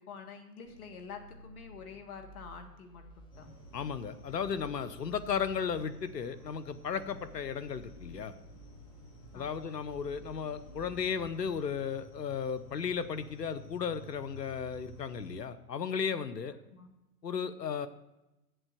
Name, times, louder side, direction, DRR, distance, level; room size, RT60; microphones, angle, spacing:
voice 1, 0.0-3.5 9.3-9.8 16.7-17.0, left 5 dB, 65° left, 5 dB, 1.8 m, -48 dB
sound 1, 0.6-12.0, equal, 10° left, 0.9 m, -55 dB
sound 2, 3.3-15.4, left 1 dB, 40° left, 3.6 m, -53 dB
voice 2, 3.7-8.3 9.3-16.5 17.2-17.9, left 6 dB, 85° left, 12 dB, 0.9 m, -35 dB
8.0 x 7.5 x 6.4 m, 0.96 s
figure-of-eight pair, 110°, 48 cm